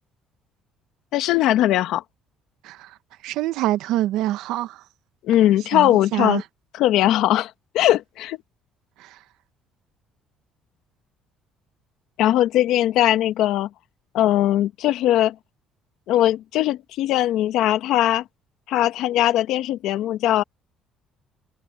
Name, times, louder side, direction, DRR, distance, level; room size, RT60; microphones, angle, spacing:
voice 1, 1.1-2.0 5.2-6.4 6.7-8.4 12.2-13.7 14.1-15.3 16.1-18.2 18.7-20.4, left 13 dB, 65° left, 1.1 m, -20 dB
voice 2, 3.2-4.8 5.7-6.4 9.0-9.1, right 14 dB, 75° right, 0.9 m, -25 dB
cardioid pair, 175°, 0 cm